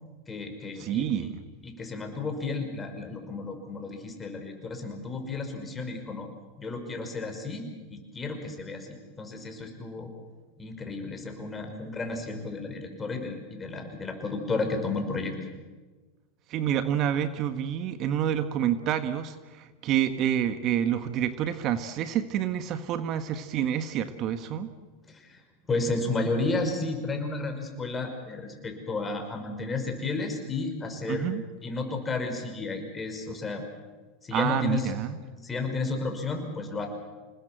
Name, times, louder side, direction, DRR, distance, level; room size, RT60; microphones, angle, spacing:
voice 1, 0.3-1.3 1.6-6.3 6.6-10.1 10.6-15.3 25.1-25.4 25.7-31.3 31.6-33.6 34.2-34.9 35.4-36.9, left 3 dB, 20° left, 5 dB, 5.6 m, -32 dB
voice 2, 0.8-1.4 16.5-24.7 31.1-31.4 34.3-35.2, right 10 dB, 45° right, 10 dB, 1.4 m, -28 dB
27.0 x 20.0 x 7.8 m, 1.3 s
hypercardioid pair, 105°, 0 cm